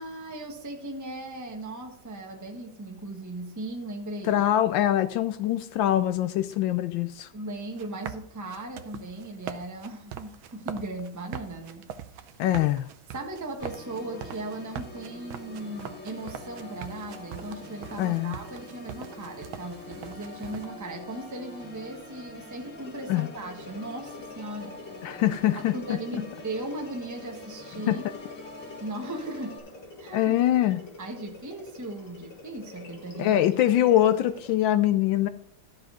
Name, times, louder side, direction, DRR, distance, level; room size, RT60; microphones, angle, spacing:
voice 1, 0.0-4.4 7.3-11.9 13.1-25.1 25.5-28.0 28.8-29.6 30.0-30.2 31.0-33.4, right 2 dB, 10° right, 2 dB, 1.1 m, -37 dB
voice 2, 4.2-7.3 12.4-12.9 18.0-18.4 23.1-23.3 25.0-26.0 27.9-28.0 30.1-30.8 33.2-35.3, left 12 dB, 75° left, 12 dB, 1.3 m, -23 dB
sound 1, 7.6-20.7, right 9 dB, 85° right, 1.5 m, -42 dB
Organ, 13.6-29.6, left 2 dB, 40° left, 2.3 m, -45 dB
sound 2, 22.8-34.6, left 2 dB, 55° left, 3.0 m, -47 dB
12.5 x 6.5 x 4.9 m, 0.68 s
omnidirectional pair, 2.2 m